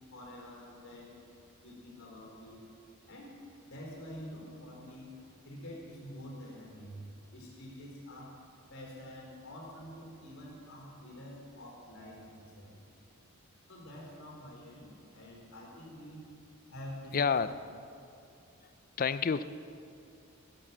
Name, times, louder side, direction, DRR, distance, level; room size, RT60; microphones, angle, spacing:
voice 1, 0.1-1.2 1.6-2.6 3.1-3.3 3.6-5.1 5.4-7.0 7.3-8.4 8.7-12.7 13.7-16.2 16.7-17.5, equal, 65° left, -1 dB, 4.2 m, -47 dB
voice 2, 17.1-17.5 19.0-19.4, left 6 dB, 40° left, 13 dB, 0.4 m, -28 dB
15.0 x 10.5 x 7.5 m, 2.5 s
head